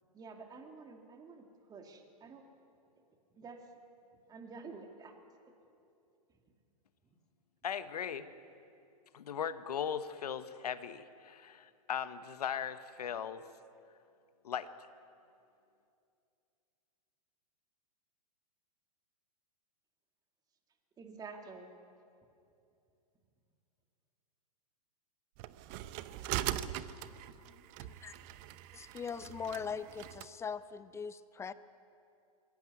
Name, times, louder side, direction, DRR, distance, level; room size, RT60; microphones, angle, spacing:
voice 1, 0.1-2.4 3.3-3.6 4.3-5.2 5.4-5.5 21.0-21.7, right 4 dB, 20° right, 3 dB, 2.2 m, -49 dB
voice 2, 7.6-8.3 9.1-13.5 14.4-14.7, left 8 dB, 80° left, 11 dB, 1.1 m, -38 dB
sound 1, 25.4-30.3, right 13 dB, 40° right, 0.8 m, -41 dB
voice 3, 27.8-28.2 28.7-31.5, left 6 dB, 15° left, 15 dB, 0.6 m, -41 dB
21.5 x 16.0 x 9.5 m, 2.6 s
hypercardioid pair, 120°, 20 cm